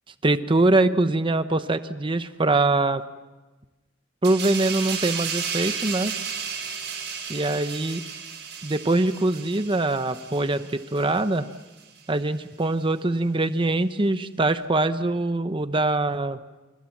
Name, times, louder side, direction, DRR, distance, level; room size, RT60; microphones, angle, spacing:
voice 1, 0.2-3.0 4.2-6.1 7.3-8.0 8.6-11.5 12.1-16.4, right 2 dB, 25° right, 11 dB, 0.8 m, -23 dB
sound 1, 4.2-11.4 11.8-12.0, right 7 dB, 60° right, 7.3 m, -33 dB
29.0 x 25.0 x 7.3 m, 1.2 s
head